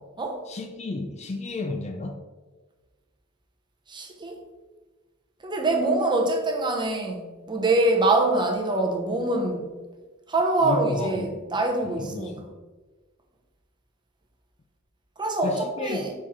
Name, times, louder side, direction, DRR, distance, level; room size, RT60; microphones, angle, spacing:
voice 1, 0.5-2.2 10.6-11.3 11.8-12.5 15.4-16.1, left 2 dB, 30° left, 5 dB, 0.4 m, -32 dB
voice 2, 3.9-4.4 5.4-9.7 10.3-12.4 15.2-16.1, right 2 dB, 20° right, 3 dB, 0.9 m, -24 dB
6.8 x 4.5 x 3.6 m, 1.3 s
head